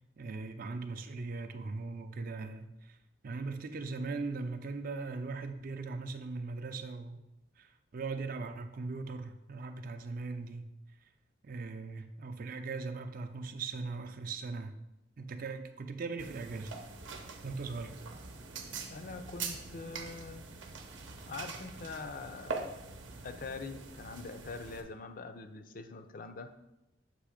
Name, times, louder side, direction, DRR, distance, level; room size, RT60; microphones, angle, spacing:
voice 1, 0.2-3.0 3.2-7.2 7.6-10.6 11.4-14.8 15.2-16.7 17.4-18.0, right 3 dB, 50° right, 8 dB, 0.4 m, -39 dB
sound 1, 16.2-24.8, right 4 dB, 80° right, 0.7 m, -44 dB
voice 2, 18.9-20.5 21.3-22.7 23.2-26.5, left 4 dB, 50° left, 8 dB, 0.5 m, -44 dB
7.5 x 3.0 x 4.9 m, 0.91 s
head